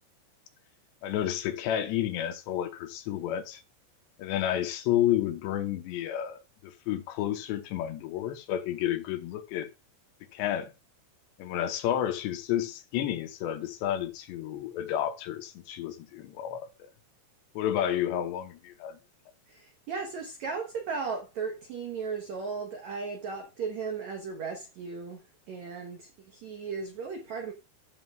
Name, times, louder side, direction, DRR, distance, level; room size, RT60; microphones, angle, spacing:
voice 1, 1.0-3.6 4.2-9.7 10.3-10.7 11.4-16.7 17.6-19.0, left 11 dB, 80° left, 3.1 m, -31 dB
voice 2, 19.5-27.5, right 5 dB, 80° right, 1.6 m, -36 dB
14.0 x 7.2 x 2.4 m
omnidirectional pair, 5.0 m